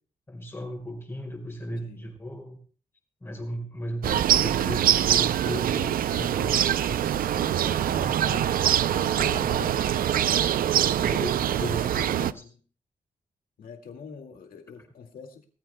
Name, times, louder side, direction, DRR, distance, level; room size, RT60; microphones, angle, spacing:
voice 1, 0.3-2.6 3.2-8.5 9.1-10.1 10.9-12.0 12.3-12.4, equal, 15° left, 2 dB, 5.0 m, -36 dB
sound 1, 4.0-12.3, right 10 dB, 85° right, 0.5 m, -24 dB
voice 2, 8.9-10.1 10.8-11.2 11.5-11.7 11.9-12.6 13.6-15.5, left 6 dB, 85° left, 4 dB, 2.2 m, -43 dB
21.0 x 14.5 x 2.3 m, 0.41 s
wide cardioid pair, 160°, 14 cm